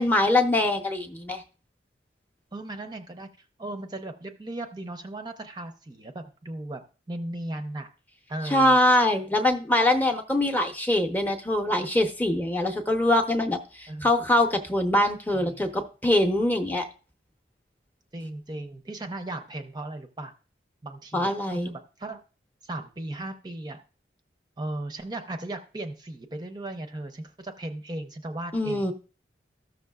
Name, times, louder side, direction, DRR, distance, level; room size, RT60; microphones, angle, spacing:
voice 1, 0.0-1.4 8.5-16.9 21.1-21.7 28.5-28.9, left 1 dB, 10° left, 5 dB, 0.7 m, -23 dB
voice 2, 2.5-7.9 8.3-8.8 13.9-14.1 15.3-15.7 18.1-20.3 20.8-22.2 22.6-23.8 24.6-28.9, right 1 dB, 20° right, 6 dB, 0.6 m, -37 dB
14.5 x 6.4 x 2.3 m, 0.36 s
head